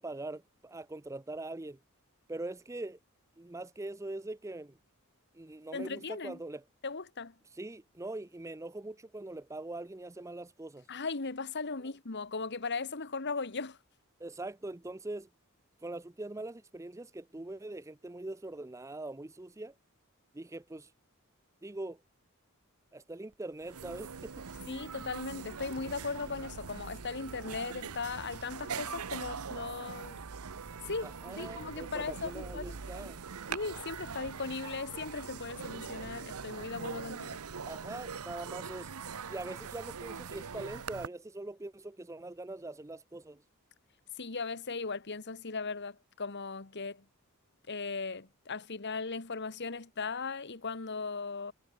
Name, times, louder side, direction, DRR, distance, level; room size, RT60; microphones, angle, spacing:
voice 1, 0.0-1.8 2.3-3.0 3.4-4.8 5.3-6.6 7.4-10.9 14.2-15.3 15.8-19.7 20.3-20.9 21.6-22.0 22.9-24.3 31.0-33.2 37.7-38.9 39.3-43.4, right 2 dB, 15° right, 0.5 m, -42 dB
voice 2, 5.7-6.4 6.8-7.3 10.9-13.8 24.7-30.2 30.9-32.7 33.5-37.4 44.2-47.0 47.7-51.5, left 4 dB, 50° left, 1.5 m, -38 dB
sound 1, 23.3-23.4 23.6-41.1, right 5 dB, 85° right, 0.9 m, -42 dB
head